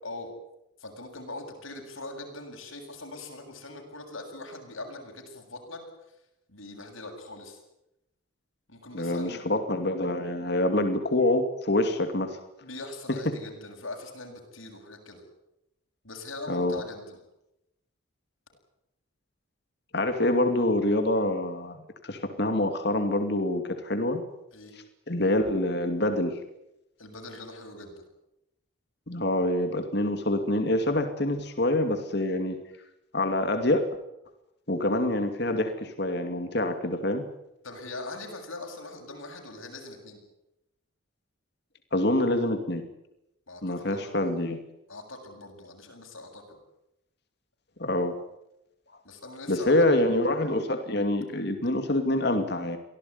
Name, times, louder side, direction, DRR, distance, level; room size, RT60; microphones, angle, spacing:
voice 1, 0.8-6.2 6.5-7.6 8.7-9.4 12.6-15.2 16.0-17.2 24.5-24.7 27.0-28.0 37.6-40.2 43.5-44.5 44.9-46.6 49.0-49.9, left 2 dB, 85° left, 3 dB, 7.6 m, -42 dB
voice 2, 8.9-12.4 16.5-16.8 19.9-21.8 22.0-24.2 25.1-26.3 29.1-32.6 33.1-33.9 34.7-37.2 41.9-42.8 43.6-44.6 47.8-48.2 49.5-52.8, left 1 dB, 55° left, 7 dB, 2.6 m, -26 dB
24.5 x 17.5 x 9.7 m, 0.86 s
head